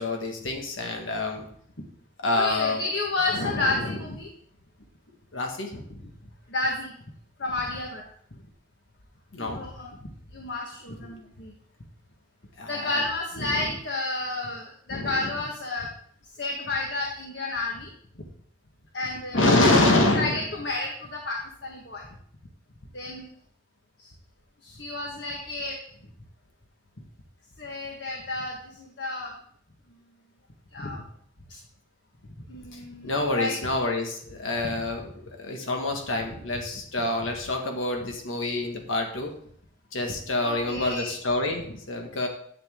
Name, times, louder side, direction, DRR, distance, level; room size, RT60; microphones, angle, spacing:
voice 1, 0.0-1.5 2.2-2.9 3.3-4.2 5.3-5.8 9.3-9.6 11.0-11.2 12.6-13.7 14.9-15.3 19.3-20.4 32.7-39.3 39.9-42.3, left 2 dB, 90° left, 2 dB, 1.7 m, -27 dB
voice 2, 2.3-4.3 6.5-6.9 7.4-8.0 9.4-11.5 12.7-15.9 16.4-17.9 18.9-19.5 20.1-21.4 21.6-22.1 22.9-23.3 24.6-25.8 27.6-29.3 30.7-31.0 32.5-33.5 34.6-34.7 40.4-41.1, left 2 dB, 60° left, 0 dB, 1.5 m, -31 dB
10.5 x 7.9 x 3.7 m, 0.62 s
head